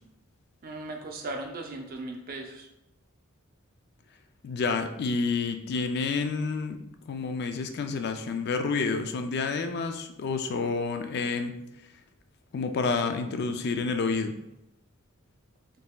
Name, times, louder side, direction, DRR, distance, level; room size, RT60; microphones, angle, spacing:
voice 1, 0.6-2.7, right 2 dB, 45° right, 3 dB, 0.5 m, -37 dB
voice 2, 4.4-11.6 12.5-14.3, left 4 dB, 50° left, 7 dB, 0.3 m, -29 dB
3.9 x 3.8 x 2.3 m, 0.88 s
head